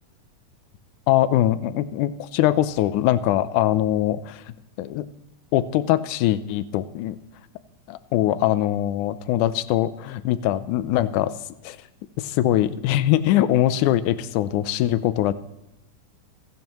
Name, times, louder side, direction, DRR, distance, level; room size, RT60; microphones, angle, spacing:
voice 1, 1.1-4.4 4.8-5.1 5.5-7.2 7.9-11.3 11.6-11.8 12.2-15.3, left 13 dB, 80° left, 14 dB, 2.1 m, -22 dB
28.5 x 10.5 x 3.1 m, 0.92 s
omnidirectional pair, 3.6 m